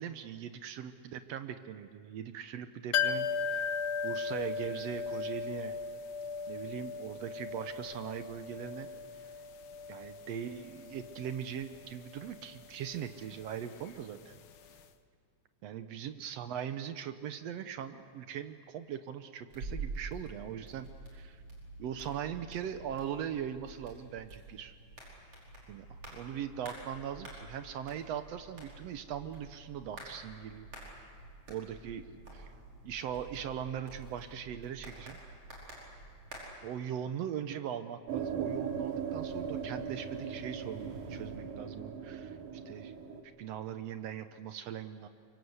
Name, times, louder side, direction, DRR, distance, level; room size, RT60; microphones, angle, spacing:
voice 1, 0.0-3.6 4.0-5.8 6.5-8.9 9.1-9.2 9.9-14.4 15.6-21.4 21.8-24.7 25.7-31.0 31.5-32.1 32.3-32.5 32.8-35.2 36.6-42.4 42.7-42.9 43.4-45.1, right 9 dB, 70° right, 10 dB, 1.7 m, -40 dB
sound 1, 2.9-14.5 14.8-14.9, left 6 dB, 70° left, 1.2 m, -38 dB
sound 2, 19.5-36.4, right 3 dB, 50° right, 6.2 m, -48 dB
sound 3, 38.1-43.2, right 7 dB, 85° right, 3.4 m, -38 dB
25.0 x 23.0 x 8.1 m, 2.2 s
omnidirectional pair, 3.5 m